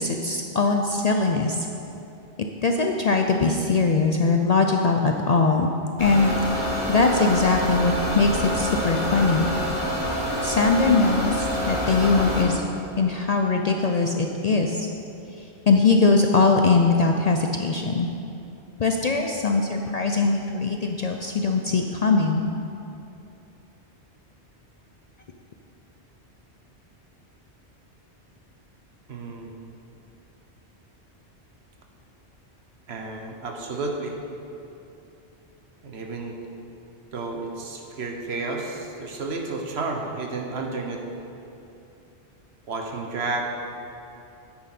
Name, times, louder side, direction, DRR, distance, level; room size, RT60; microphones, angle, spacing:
voice 1, 0.0-1.6 2.6-5.7 6.0-6.3 6.9-9.5 10.4-12.6 13.0-14.8 15.7-18.1 18.8-22.4, left 4 dB, 50° left, 3 dB, 0.5 m, -21 dB
sound 1, 6.0-12.4, equal, 80° left, 3.0 m, -27 dB
voice 2, 29.1-29.5 32.9-34.1 35.8-36.4 37.1-41.0 42.7-43.5, right 3 dB, 70° right, 2 dB, 1.3 m, -31 dB
10.0 x 8.6 x 4.3 m, 2.8 s
omnidirectional pair, 1.1 m